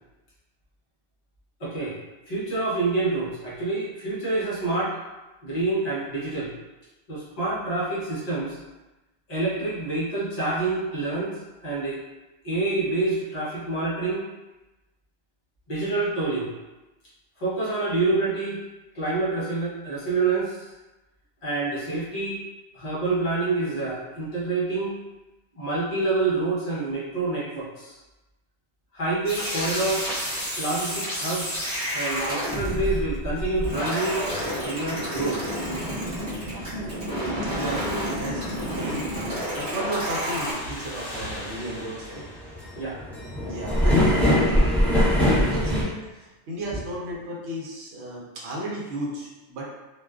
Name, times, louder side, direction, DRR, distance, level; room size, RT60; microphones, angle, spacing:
voice 1, 1.6-2.0 2.3-5.0 5.4-6.5 7.1-8.6 9.3-12.0 12.4-14.3 15.7-16.5 17.4-18.6 18.9-20.7 21.4-22.4 22.7-25.0 25.6-28.0 28.9-30.1 30.6-31.6 31.9-34.2 34.6-35.4 42.8-43.0 46.7-46.8, right 3 dB, 40° left, -8 dB, 0.7 m, -27 dB
sound 1, 29.2-40.5, equal, 20° right, 1.2 m, -30 dB
sound 2, 32.8-32.9 33.4-33.5 33.9-34.0 34.4-34.5 35.0-35.1 35.5-35.6 36.1-36.2 36.6-36.7 37.2-37.3 37.7-37.8 38.3-38.4 38.8-38.9 39.3-39.4 39.9-40.0 40.4-40.7 40.9-41.0 41.3-45.8, equal, ahead, 0.4 m, -22 dB
voice 2, 37.4-39.2 39.5-42.7 43.4-49.8, right 1 dB, 75° right, -4 dB, 0.9 m, -34 dB
sound 3, 40.3-43.7, left 1 dB, 60° left, 1.0 m, -40 dB
2.4 x 2.3 x 2.3 m, 1.1 s
omnidirectional pair, 1.2 m